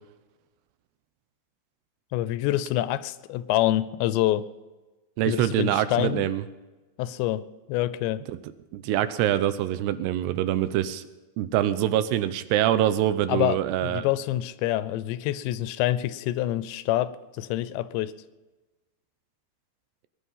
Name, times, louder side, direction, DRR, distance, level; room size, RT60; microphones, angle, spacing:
voice 1, 2.1-4.5 5.3-6.3 7.0-8.2 13.3-13.6 13.8-18.1, left 14 dB, 85° left, 15 dB, 2.9 m, -26 dB
voice 2, 5.2-6.4 8.3-8.4 8.7-11.0 11.4-14.1, right 12 dB, 80° right, 13 dB, 2.7 m, -24 dB
21.0 x 11.0 x 5.6 m, 1.1 s
omnidirectional pair, 5.1 m